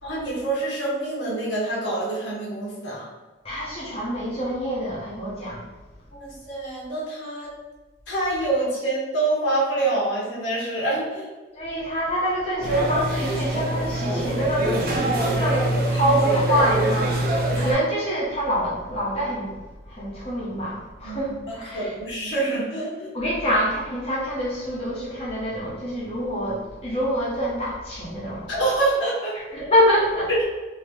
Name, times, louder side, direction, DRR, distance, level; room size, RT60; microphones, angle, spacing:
voice 1, 0.0-3.1 6.1-7.5 8.1-11.3 15.2-15.4 15.7-16.1 16.5-16.6 17.5-17.7 21.0-23.2 28.5-29.7 30.3-30.4, right 2 dB, 80° left, -6 dB, 1.1 m, -26 dB
voice 2, 3.4-5.7 11.5-19.6 19.9-21.9 23.1-28.5 29.5-30.3, equal, 30° left, -6 dB, 0.9 m, -26 dB
sound 1, 12.6-17.7, right 1 dB, 50° right, 0.6 m, -24 dB
2.8 x 2.8 x 3.4 m, 1.2 s
head